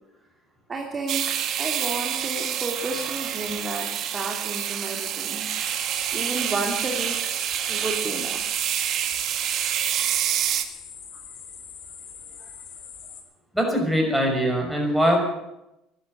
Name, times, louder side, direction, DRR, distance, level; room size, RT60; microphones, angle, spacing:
voice 1, 0.7-1.2 1.6-5.5 6.1-7.2 7.7-8.6, right 3 dB, 30° right, 1 dB, 2.7 m, -31 dB
sound 1, 1.1-10.6, right 10 dB, 60° right, 1.5 m, -27 dB
sound 2, 5.6-13.2, left 7 dB, 60° left, 4.0 m, -43 dB
voice 2, 13.5-15.2, equal, 5° right, 1 dB, 5.7 m, -22 dB
12.0 x 12.0 x 9.8 m, 0.89 s
supercardioid pair, 100°, 0 cm